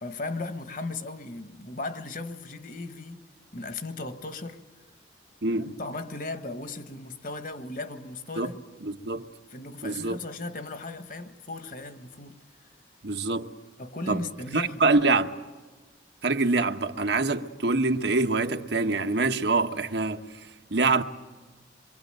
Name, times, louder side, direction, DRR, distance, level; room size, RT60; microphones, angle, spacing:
voice 1, 0.0-3.2 3.5-4.6 5.5-8.6 9.5-12.4 13.8-14.8, left 2 dB, 45° left, 1.5 m, -37 dB
voice 2, 8.8-9.3 9.8-10.2 13.0-13.5 14.1-14.2 14.5-15.3 16.2-21.0, right 3 dB, 65° right, 1.2 m, -25 dB
27.5 x 24.0 x 9.0 m
head